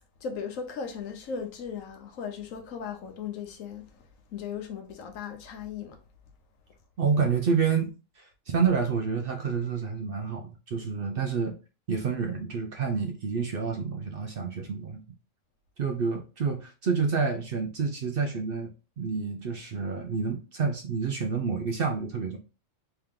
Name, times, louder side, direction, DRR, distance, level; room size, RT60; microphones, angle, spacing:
voice 1, 0.2-3.9 4.3-6.0, left 6 dB, 80° left, 1.2 m, -37 dB
voice 2, 7.0-11.6 11.9-15.0 15.8-22.4, right 5 dB, 60° right, 0.6 m, -29 dB
3.3 x 3.0 x 3.5 m
omnidirectional pair, 1.4 m